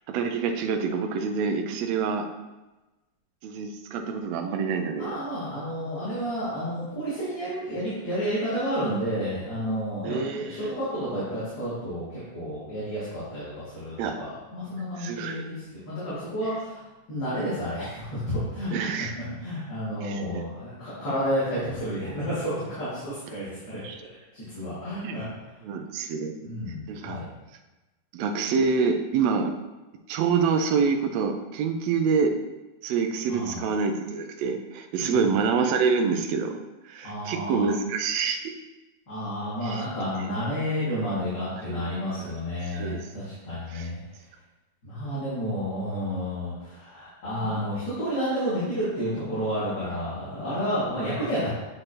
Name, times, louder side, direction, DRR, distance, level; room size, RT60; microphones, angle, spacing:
voice 1, 0.1-2.3 3.4-5.1 10.0-10.8 14.0-14.2 15.0-15.4 18.7-19.1 20.0-20.4 23.8-24.0 25.0-25.2 25.6-26.4 26.9-27.2 28.1-29.5 30.1-32.3 32.8-36.5 36.9-38.5 39.6-39.9 41.5-41.9 42.2-42.3 42.7-43.1 43.7-43.9 47.4-47.6, right 5 dB, 75° right, 5 dB, 1.7 m, -27 dB
voice 2, 5.0-12.0 12.3-16.8 17.1-18.7 19.0-19.1 19.4-23.8 24.3-25.2 26.4-27.2 33.3-33.6 35.0-35.2 37.0-37.6 39.1-44.0 44.8-51.5, equal, 35° left, -11 dB, 2.8 m, -31 dB
8.1 x 6.6 x 3.0 m, 1.1 s
omnidirectional pair, 3.4 m